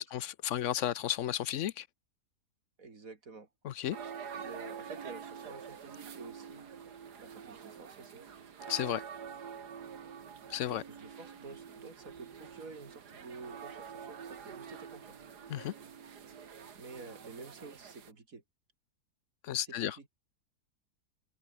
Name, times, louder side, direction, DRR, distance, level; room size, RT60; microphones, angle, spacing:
voice 1, 0.0-1.9 3.6-4.0 8.7-9.0 10.5-10.8 15.5-15.7 19.4-20.0, left 11 dB, 60° left, 0.8 m, -33 dB
voice 2, 2.8-3.5 4.4-6.7 7.2-8.4 10.7-15.2 16.7-18.4 19.6-20.1, right 4 dB, 60° right, 3.5 m, -50 dB
sound 1, 3.9-18.1, right 7 dB, 85° right, 2.2 m, -47 dB
omnidirectional pair, 1.7 m